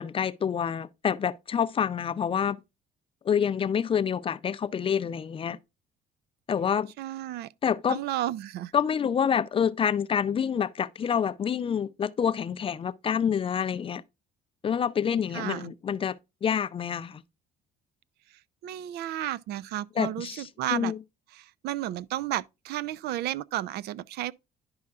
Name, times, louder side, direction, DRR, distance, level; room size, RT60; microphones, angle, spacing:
voice 1, 0.0-2.6 3.2-5.6 6.5-6.9 7.6-8.0 8.7-14.0 14.6-16.2 16.4-17.2 20.0-21.0, left 7 dB, 30° left, 0.4 m, -27 dB
voice 2, 7.0-7.5 7.9-8.7 15.3-15.7 18.6-20.9 21.6-24.3, right 13 dB, 70° right, 0.4 m, -32 dB
10.5 x 5.5 x 2.4 m
cardioid pair, 110°, 17 cm